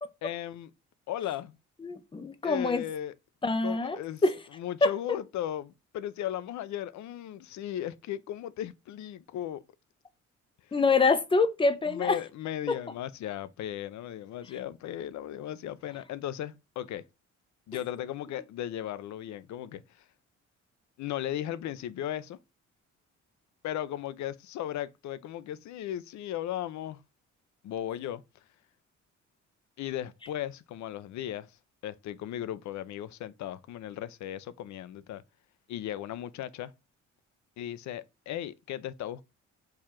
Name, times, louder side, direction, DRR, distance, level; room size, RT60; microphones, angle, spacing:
voice 1, 0.2-0.7 1.1-1.6 2.4-3.1 3.6-4.2 4.5-9.6 11.9-17.0 17.7-20.0 21.0-22.4 23.6-27.0 27.6-28.2 29.8-31.6 31.8-35.2 35.7-36.7 37.6-39.2, left 11 dB, 70° left, 0.5 m, -36 dB
voice 2, 1.8-2.8 3.4-4.3 4.8-5.2 10.7-12.2 12.7-12.8, left 3 dB, 15° left, 0.6 m, -26 dB
4.7 x 2.4 x 4.3 m
cardioid pair, 90°, 30 cm